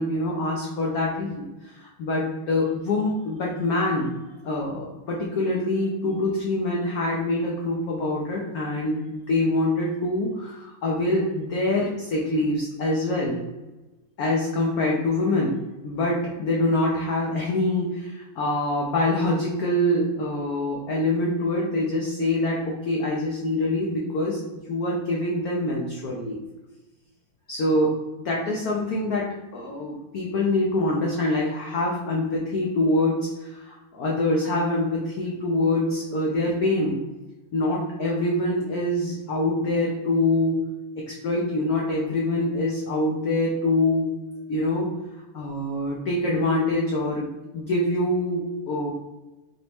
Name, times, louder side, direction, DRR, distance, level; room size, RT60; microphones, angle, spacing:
voice 1, 0.0-4.1 4.4-13.4 14.2-15.5 15.8-24.4 24.7-26.4 27.5-29.3 29.5-37.0 37.5-40.6 41.0-44.1 44.5-44.9 45.3-47.3 47.5-48.9, left 2 dB, 85° left, -2 dB, 0.8 m, -25 dB
4.1 x 3.0 x 3.4 m, 1.1 s
omnidirectional pair, 2.4 m